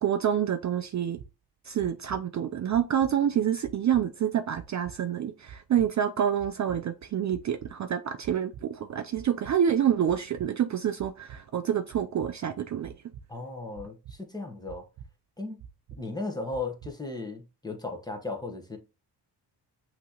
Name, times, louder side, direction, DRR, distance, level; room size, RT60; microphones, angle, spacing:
voice 1, 0.0-1.2 1.6-12.9, right 9 dB, 45° right, 0.4 m, -27 dB
sound 1, 1.2-1.3 1.8-2.2 2.7-3.1 3.6-4.0 4.6-5.0 5.5-5.9 6.4-6.8 7.3-7.7 8.2-8.6 9.2-9.6 10.1-10.5 11.0-11.4 11.9-12.3 12.8-13.2 13.8-14.2 14.7-15.1 15.6-16.0 16.5-16.9, right 7 dB, 80° right, 0.7 m, -45 dB
voice 2, 13.3-14.9 15.4-15.6 16.0-18.8, left 3 dB, 10° left, 1.1 m, -36 dB
6.0 x 3.0 x 2.9 m
cardioid pair, 90°, 42 cm